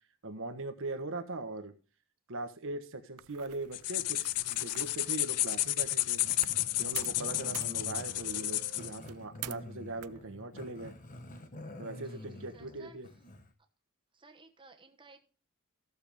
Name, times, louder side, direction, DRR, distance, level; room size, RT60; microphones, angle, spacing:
voice 1, 0.2-1.7 2.3-6.2 6.8-10.9 11.8-13.1, right 2 dB, 60° right, 9 dB, 1.2 m, -40 dB
sound 1, 3.2-6.7 7.0-7.2 7.5-9.7 10.0-10.6, right 14 dB, 80° right, 0.4 m, -48 dB
sound 2, 3.7-9.0, left 16 dB, 80° left, 0.4 m, -32 dB
Growling, 6.2-13.5, left 1 dB, 35° left, 1.0 m, -48 dB
voice 2, 12.0-13.0 14.1-15.2, right 3 dB, 20° right, 5 dB, 1.1 m, -57 dB
14.0 x 6.9 x 3.5 m, 0.36 s
head